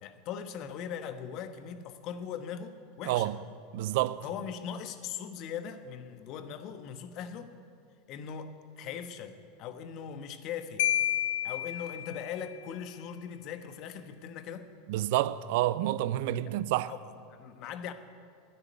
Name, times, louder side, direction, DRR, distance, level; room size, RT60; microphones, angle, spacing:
voice 1, 0.0-3.3 4.2-7.5 8.1-10.8 11.4-14.7 16.5-16.6 16.9-17.9, left 8 dB, 50° left, 1.3 m, -40 dB
voice 2, 3.1-3.4 3.7-4.2 14.9-16.9, right 14 dB, 65° right, 0.5 m, -28 dB
Marimba xylophone, 10.8-12.5, left 12 dB, 70° left, 0.3 m, -30 dB
12.5 x 10.0 x 9.5 m
hypercardioid pair, 95°, 0 cm